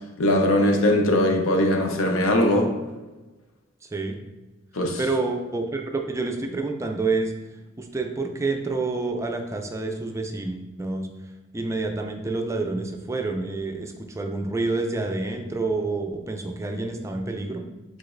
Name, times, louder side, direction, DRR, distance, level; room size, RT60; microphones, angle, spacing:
voice 1, 0.2-2.7 4.7-5.0, left 1 dB, 80° left, 2 dB, 0.7 m, -20 dB
voice 2, 3.8-4.2 5.0-7.3 7.8-11.1 11.5-17.6, right 3 dB, 15° right, 3 dB, 0.4 m, -28 dB
4.8 x 4.0 x 2.5 m, 1.2 s
head